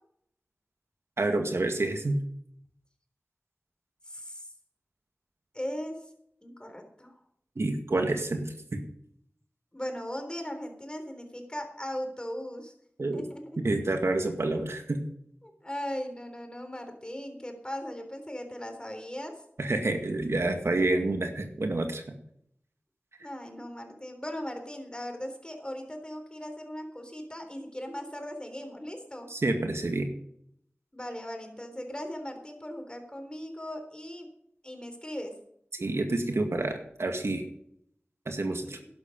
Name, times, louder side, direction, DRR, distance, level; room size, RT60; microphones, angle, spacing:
voice 1, 1.2-2.2 7.6-8.8 13.0-13.2 13.6-15.0 19.6-22.2 29.3-30.1 35.7-37.4 38.3-38.8, right 2 dB, 80° right, 5 dB, 2.0 m, -28 dB
voice 2, 4.1-4.5 5.5-6.1 6.4-7.2 9.7-12.7 13.1-13.6 15.4-19.3 23.2-29.3 30.9-34.3 34.6-35.3 38.6-38.9, equal, 20° left, 5 dB, 3.8 m, -38 dB
12.0 x 11.5 x 5.3 m, 0.70 s
wide cardioid pair, 50°, 4 cm